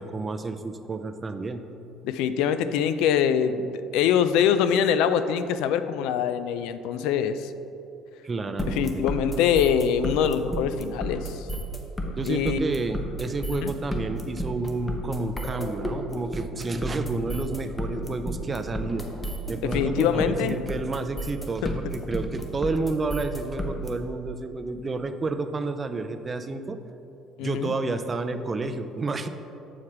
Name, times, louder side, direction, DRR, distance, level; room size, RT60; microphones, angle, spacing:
voice 1, 0.0-1.7 8.2-9.0 12.2-19.1 19.5-26.8 27.4-29.3, right 3 dB, 20° right, 9 dB, 0.4 m, -30 dB
voice 2, 2.0-7.5 8.7-11.5 12.1-12.6 13.5-13.7 19.6-20.6 21.6-21.7 27.4-27.7, left 8 dB, 80° left, 11 dB, 0.3 m, -24 dB
sound 1, 8.6-23.9, equal, 15° left, 0.7 m, -32 dB
7.2 x 4.8 x 4.7 m, 2.8 s
cardioid pair, 140°, 0 cm